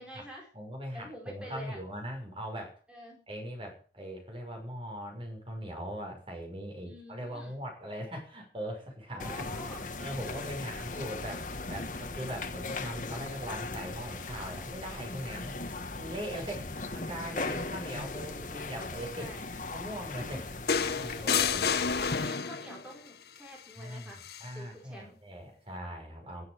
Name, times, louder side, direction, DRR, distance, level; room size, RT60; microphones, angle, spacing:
voice 1, 0.0-0.5 0.9-1.8 2.9-3.2 6.8-7.6 9.1-9.9 10.2-11.0 15.3-15.6 17.4-17.7 19.2-19.4 20.2-20.6 21.2-21.7 22.0-24.2 24.5-25.1, equal, 5° right, -2 dB, 4.6 m, -47 dB
voice 2, 0.5-2.8 3.3-9.4 10.0-15.6 16.0-19.3 19.7-20.4 20.9-21.8 23.8-24.1 24.4-26.4, equal, 30° right, 2 dB, 6.1 m, -40 dB
sound 1, 9.2-22.3, left 3 dB, 45° left, 1.5 m, -39 dB
sound 2, 20.7-22.8 24.2-24.4, left 6 dB, 65° left, 0.9 m, -29 dB
13.5 x 11.5 x 6.8 m, 0.42 s
head